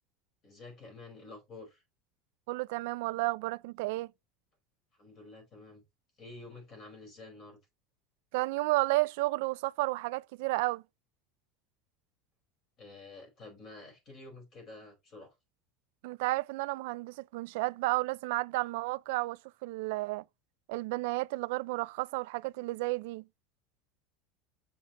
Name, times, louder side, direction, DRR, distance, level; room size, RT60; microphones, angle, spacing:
voice 1, 0.4-1.8 4.9-5.8 6.2-7.6 12.8-15.3, left 3 dB, 30° left, 4.8 m, -49 dB
voice 2, 2.5-4.1 8.3-10.8 16.0-20.2 20.7-23.3, right 21 dB, 60° right, 0.4 m, -32 dB
7.1 x 7.1 x 3.0 m
supercardioid pair, 180°, 0 cm